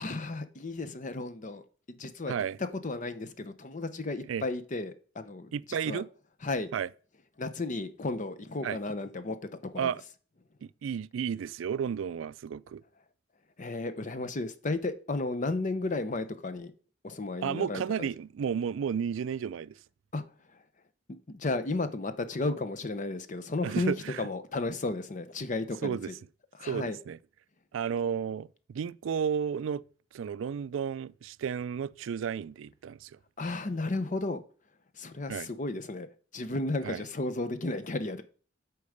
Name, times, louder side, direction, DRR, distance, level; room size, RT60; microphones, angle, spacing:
voice 1, 0.0-2.3 2.8-5.5 5.9-6.0 6.4-6.7 7.4-9.4 9.6-9.9 13.6-16.7 17.0-18.1 20.1-20.2 21.3-26.0 26.6-27.0 33.4-34.4 35.0-36.1 36.3-38.2, left 2 dB, 40° left, 0.7 m, -33 dB
voice 2, 2.3-2.6 4.2-4.4 5.5-6.1 6.7-6.9 8.6-8.8 9.8-10.0 10.6-12.8 17.4-19.8 23.6-24.3 25.8-26.1 26.7-27.2 27.7-29.8 30.1-33.1 35.3-35.5 36.8-37.0, right 7 dB, 85° right, 0.3 m, -32 dB
8.4 x 4.7 x 6.5 m
head